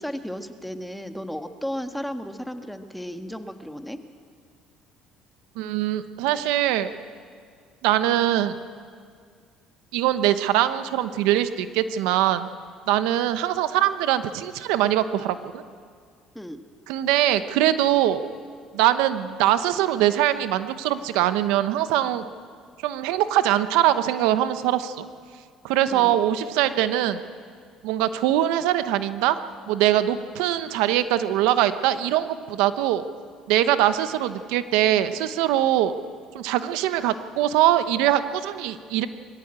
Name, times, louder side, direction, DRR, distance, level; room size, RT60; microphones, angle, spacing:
voice 1, 0.0-4.0 16.3-16.6 25.9-26.2, equal, ahead, 7 dB, 1.5 m, -34 dB
voice 2, 5.6-6.9 7.8-8.5 9.9-12.5 12.9-15.6 16.9-18.2 18.7-22.2 22.8-25.1 25.6-27.2 27.8-29.4 29.7-33.0 33.5-35.9 36.3-39.1, right 12 dB, 85° right, 11 dB, 0.9 m, -22 dB
22.0 x 15.5 x 8.9 m, 2.1 s
supercardioid pair, 90°, 0 cm